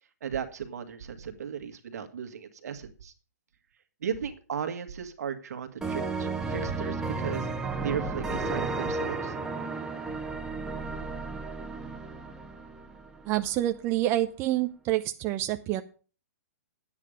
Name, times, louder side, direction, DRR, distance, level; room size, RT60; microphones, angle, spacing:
voice 1, 0.2-3.1 4.0-7.5 7.8-9.3, right 7 dB, 70° right, 8 dB, 1.7 m, -36 dB
sound 1, 5.8-13.4, right 3 dB, 5° right, 1.1 m, -33 dB
voice 2, 13.3-15.8, right 14 dB, 30° right, 7 dB, 0.6 m, -27 dB
9.8 x 8.6 x 5.0 m, 0.37 s
hypercardioid pair, 140°, 9 cm